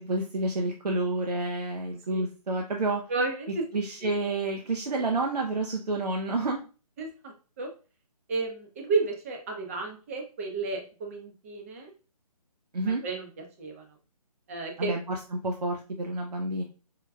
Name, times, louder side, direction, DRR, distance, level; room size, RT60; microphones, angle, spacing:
voice 1, 0.0-3.0 3.7-6.6 12.7-13.0 14.8-15.2 15.4-16.6, right 2 dB, 85° right, 1 dB, 0.6 m, -29 dB
voice 2, 3.1-3.6 4.0-4.1 7.0-7.7 8.3-11.9 12.8-13.8 14.5-14.9, right 3 dB, 20° right, 2 dB, 0.5 m, -32 dB
4.7 x 2.2 x 2.3 m, 0.35 s
figure-of-eight pair, 150°, 20 cm